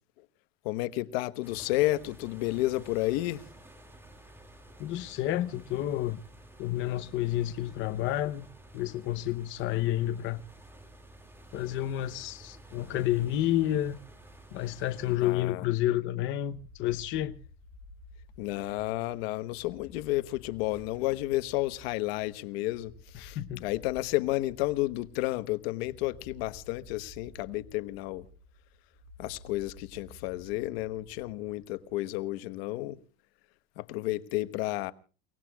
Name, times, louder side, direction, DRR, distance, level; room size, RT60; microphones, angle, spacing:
voice 1, 0.6-3.5 15.2-15.6 18.4-28.3 29.2-33.0 33.8-34.9, left 17 dB, 75° left, 1.3 m, -31 dB
sound 1, 1.4-15.2, right 1 dB, 5° right, 2.3 m, -52 dB
voice 2, 4.8-6.2 6.6-8.5 8.7-10.4 11.5-14.0 14.5-17.4 23.1-23.7, left 13 dB, 40° left, 0.9 m, -30 dB
sound 2, 16.4-31.9, left 3 dB, 15° left, 3.9 m, -53 dB
29.5 x 18.5 x 2.4 m
cardioid pair, 160°, 31 cm